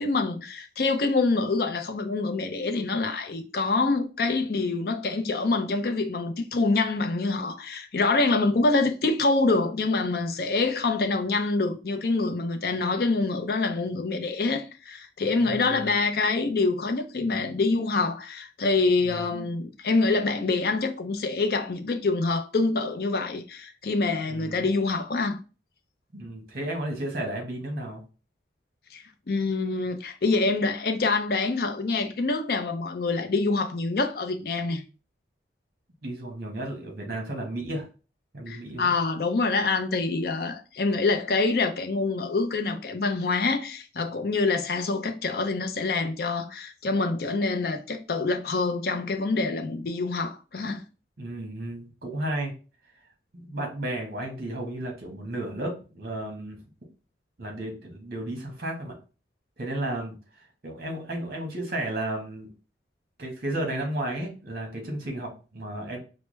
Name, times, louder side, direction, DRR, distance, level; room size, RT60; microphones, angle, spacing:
voice 1, 0.0-25.4 28.9-34.8 38.5-50.8, left 3 dB, 55° left, 0.5 m, -26 dB
voice 2, 15.4-15.9 19.0-19.5 24.2-24.6 26.1-28.0 36.0-37.9 38.3-38.9 51.2-52.5 53.3-56.6 57.4-58.9 59.6-62.5 63.2-66.0, right 1 dB, 55° right, 1.2 m, -33 dB
4.5 x 2.0 x 3.1 m
head